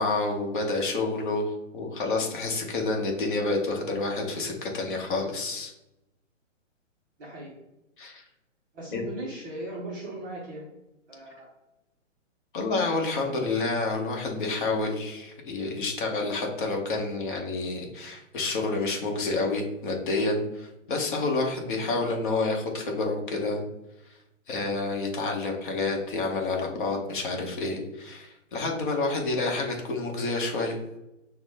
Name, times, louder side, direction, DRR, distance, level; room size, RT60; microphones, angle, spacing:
voice 1, 0.0-5.7 8.0-8.2 8.9-9.0 12.5-23.6 24.5-30.8, left 3 dB, 40° left, 1 dB, 1.1 m, -29 dB
voice 2, 7.2-7.5 8.7-10.6 11.1-11.5 21.6-21.8, right 1 dB, 15° right, -6 dB, 0.6 m, -38 dB
5.8 x 2.2 x 3.5 m, 0.91 s
hypercardioid pair, 155°, 38 cm